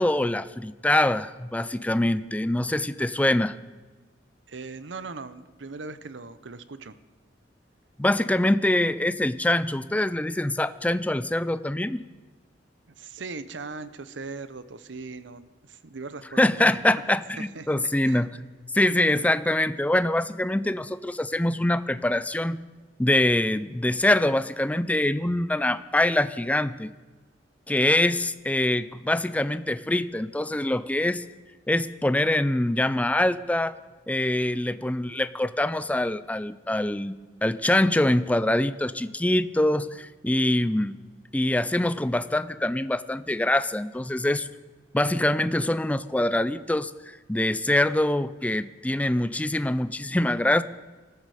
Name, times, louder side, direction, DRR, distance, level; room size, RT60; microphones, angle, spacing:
voice 1, 0.0-3.6 8.0-12.0 16.4-18.4 18.7-22.6 23.0-26.9 27.7-31.2 31.7-33.8 34.1-40.9 41.3-44.5 44.9-50.6, left 1 dB, 10° left, 15 dB, 0.4 m, -24 dB
voice 2, 4.5-7.0 13.0-16.8 17.4-18.3 19.1-19.4, right 4 dB, 80° right, 13 dB, 0.8 m, -39 dB
19.5 x 13.5 x 4.9 m, 1.3 s
head